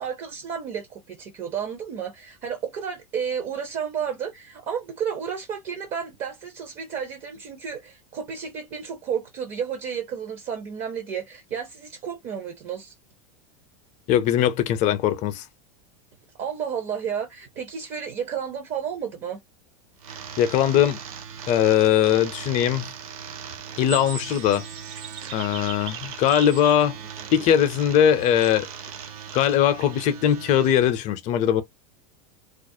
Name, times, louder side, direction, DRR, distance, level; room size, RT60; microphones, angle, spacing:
voice 1, 0.0-12.9 16.4-19.4, right 7 dB, 40° right, 0.6 m, -32 dB
voice 2, 14.1-15.4 20.4-21.0 21.5-22.9 23.8-24.6 25.3-27.0 27.3-28.7 29.3-31.6, left 10 dB, 40° left, 0.5 m, -20 dB
sound 1, 20.0-30.7, right 7 dB, 85° right, 0.7 m, -39 dB
sound 2, 23.9-30.0, right 7 dB, 65° right, 1.1 m, -40 dB
2.4 x 2.0 x 2.6 m
hypercardioid pair, 115°, 18 cm